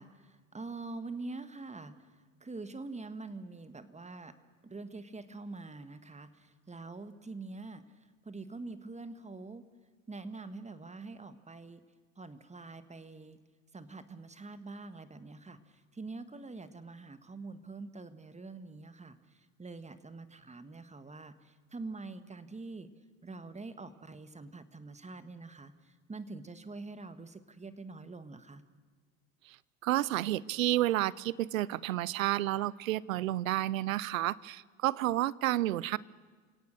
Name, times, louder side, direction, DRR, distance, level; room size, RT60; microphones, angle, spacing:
voice 1, 0.0-1.9 2.4-4.3 4.6-7.8 8.2-9.6 10.1-11.8 12.2-13.4 13.7-15.6 15.9-19.2 19.6-22.9 23.2-25.7 26.1-28.6, right 3 dB, 15° right, 12 dB, 1.7 m, -45 dB
voice 2, 29.8-36.0, right 15 dB, 85° right, 23 dB, 0.6 m, -30 dB
28.5 x 17.5 x 6.7 m, 1.5 s
hypercardioid pair, 70°, 39 cm